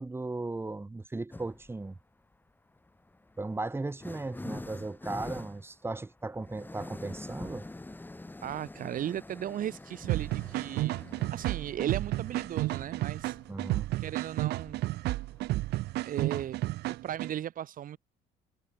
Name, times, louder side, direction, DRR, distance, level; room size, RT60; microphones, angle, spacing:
voice 1, 0.0-2.0 3.4-7.7 13.5-13.9, right 2 dB, 15° right, 1.9 m, -36 dB
sound 1, 1.3-1.8 2.8-16.2, left 2 dB, 10° left, 6.8 m, -46 dB
voice 2, 8.4-11.0 11.3-13.4 14.0-14.8 16.0-16.6 16.9-18.0, right 11 dB, 55° right, 1.7 m, -36 dB
sound 2, 10.1-17.3, right 17 dB, 80° right, 1.4 m, -32 dB
cardioid pair, 110°, 17 cm